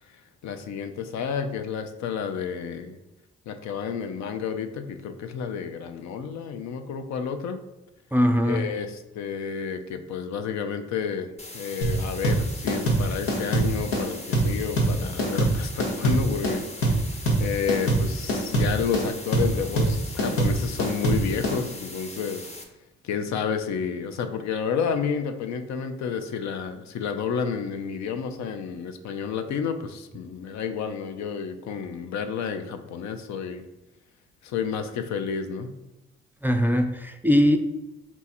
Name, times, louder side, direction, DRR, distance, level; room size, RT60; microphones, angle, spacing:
voice 1, 0.4-3.0 3.5-7.6 8.4-16.7 17.4-22.5 23.0-33.7 34.4-35.7, left 6 dB, 70° left, 8 dB, 0.5 m, -30 dB
voice 2, 8.1-8.6 36.4-37.6, equal, 5° right, 6 dB, 0.4 m, -21 dB
sound 1, 11.4-22.6, left 2 dB, 20° left, 0.9 m, -41 dB
sound 2, 11.8-21.6, right 1 dB, 90° left, 1.0 m, -23 dB
4.2 x 2.3 x 4.2 m, 0.90 s
supercardioid pair, 50°, 29 cm